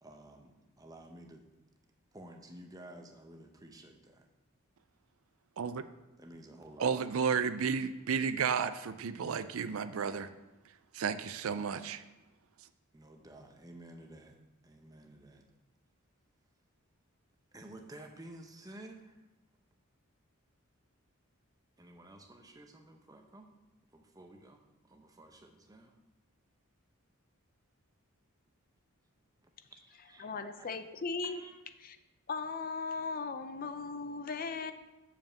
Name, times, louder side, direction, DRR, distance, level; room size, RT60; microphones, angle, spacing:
voice 1, 0.0-1.5 2.1-4.3 6.2-6.9 12.9-15.5 17.5-19.3 21.8-23.5 23.9-25.9 29.4-30.7 31.2-31.6, right 1 dB, 15° right, 4 dB, 0.8 m, -52 dB
voice 2, 6.8-10.3 10.9-12.0, right 6 dB, 70° right, 12 dB, 0.4 m, -32 dB
voice 3, 30.2-31.4 31.8-32.0 32.3-34.7, left 4 dB, 40° left, 10 dB, 0.5 m, -37 dB
7.1 x 5.3 x 7.1 m, 1.1 s
head